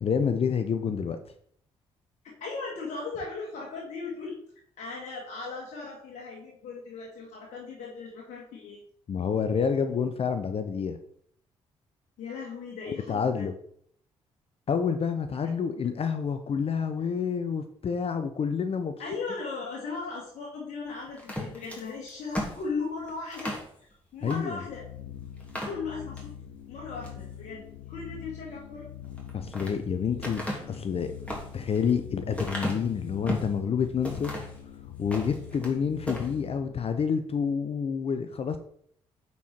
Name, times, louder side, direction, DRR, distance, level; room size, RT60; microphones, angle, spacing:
voice 1, 0.0-1.2 9.1-11.0 12.9-13.5 14.7-18.9 24.2-24.6 29.3-30.4 30.7-31.1 31.5-34.3 35.0-38.6, left 6 dB, 45° left, 9 dB, 0.7 m, -28 dB
voice 2, 2.4-4.4 4.8-8.8 12.2-13.5 19.0-24.9 25.6-26.3 26.7-27.6 27.9-28.9, left 4 dB, 65° left, -3 dB, 1.8 m, -37 dB
sound 1, 21.2-23.7 24.2-24.4 24.8-24.9 25.4-26.3 26.8-27.2 29.0-29.8 30.2-33.6 34.0-34.6 35.0-35.7 36.0-36.3, equal, 10° left, 3.0 m, -36 dB
sound 2, 24.6-36.7, left 10 dB, 85° left, 0.6 m, -43 dB
8.3 x 4.7 x 4.4 m, 0.65 s
hypercardioid pair, 45°, 14 cm